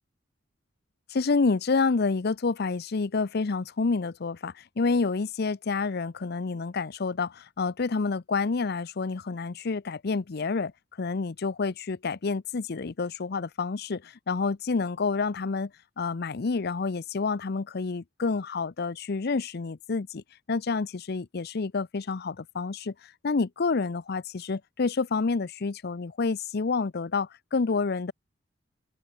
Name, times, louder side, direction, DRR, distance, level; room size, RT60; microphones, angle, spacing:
voice 1, 1.1-10.7 11.0-15.7 16.0-28.1, left 4 dB, 55° left, 0.6 m, -28 dB
open air
head